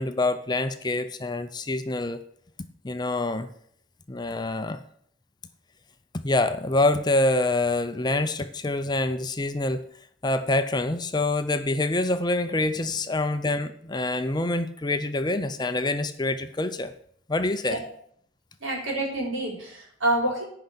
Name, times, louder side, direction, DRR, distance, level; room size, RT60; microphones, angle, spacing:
voice 1, 0.0-2.2 2.8-3.5 4.1-4.8 6.2-9.9 10.2-16.9 17.3-17.8, left 2 dB, 20° left, 9 dB, 0.5 m, -26 dB
voice 2, 18.6-20.4, right 1 dB, 75° right, -1 dB, 4.4 m, -27 dB
10.5 x 5.6 x 8.0 m, 0.65 s
head